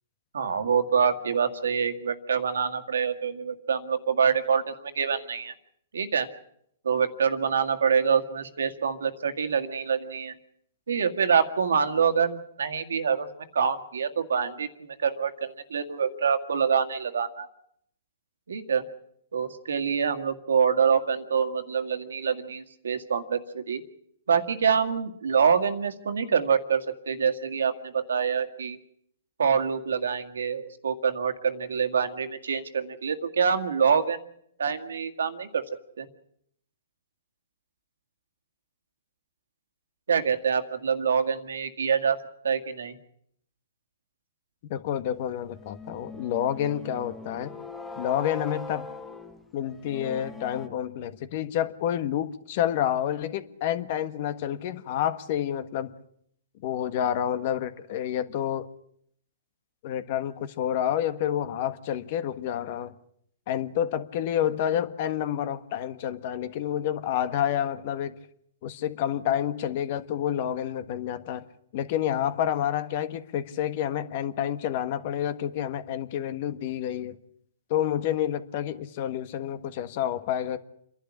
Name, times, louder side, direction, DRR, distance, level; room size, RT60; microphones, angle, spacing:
voice 1, 0.3-5.5 5.9-6.3 6.9-10.3 10.9-13.3 13.5-17.5 18.5-18.8 19.3-23.8 24.3-28.8 29.4-34.3 34.6-35.6 36.0-36.1 40.1-42.2 42.4-43.0, right 6 dB, 85° right, 8 dB, 2.0 m, -26 dB
voice 2, 44.7-47.5 48.0-48.9 49.5-55.9 56.6-58.7 59.8-63.0 63.5-68.1 68.6-71.4 71.7-77.2 77.7-80.6, left 10 dB, 50° left, 13 dB, 1.5 m, -29 dB
sound 1, 45.4-50.7, left 2 dB, 10° left, 1.6 m, -41 dB
28.0 x 11.5 x 9.9 m, 0.70 s
hypercardioid pair, 135°, 0 cm